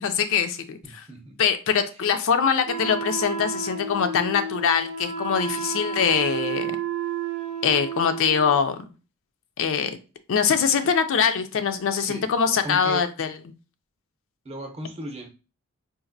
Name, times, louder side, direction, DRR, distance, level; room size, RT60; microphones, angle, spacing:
voice 1, 0.0-0.8 1.4-6.8 7.6-8.8 9.6-10.0 10.3-13.3, left 6 dB, 60° left, 9 dB, 0.4 m, -23 dB
voice 2, 0.8-1.4 1.9-2.0 11.9-12.3 12.6-13.1 14.4-15.3, right 1 dB, 30° right, 2 dB, 0.7 m, -36 dB
Wind instrument woodwind instrument, 2.7-8.6, right 5 dB, 70° right, 0.5 m, -31 dB
4.1 x 2.5 x 2.5 m, 0.33 s
head